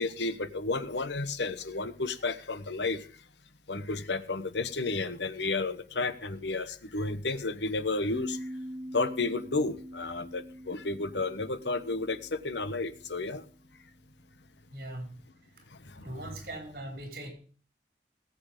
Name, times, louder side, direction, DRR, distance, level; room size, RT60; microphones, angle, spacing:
voice 1, 0.0-3.1 3.7-8.4 8.9-13.4 16.2-16.3, left 3 dB, 85° left, 13 dB, 1.2 m, -32 dB
sound 1, 8.1-13.3, equal, 20° right, 2.5 m, -44 dB
voice 2, 14.7-15.2 16.0-17.3, right 1 dB, 55° right, 4 dB, 5.7 m, -40 dB
18.0 x 8.0 x 5.1 m, 0.41 s
head